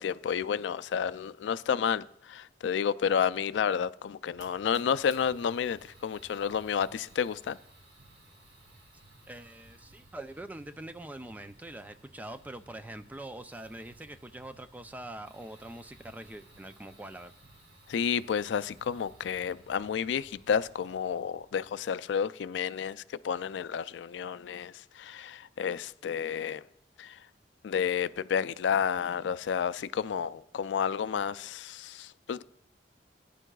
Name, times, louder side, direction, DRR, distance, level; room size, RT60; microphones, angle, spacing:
voice 1, 0.0-7.6 17.9-26.6 27.0-27.2 27.6-32.4, left 7 dB, 80° left, 0.3 m, -31 dB
Fire, 4.3-21.9, right 1 dB, 75° right, 3.4 m, -58 dB
voice 2, 9.3-17.3, right 1 dB, 10° right, 0.4 m, -44 dB
19.0 x 9.9 x 2.3 m
head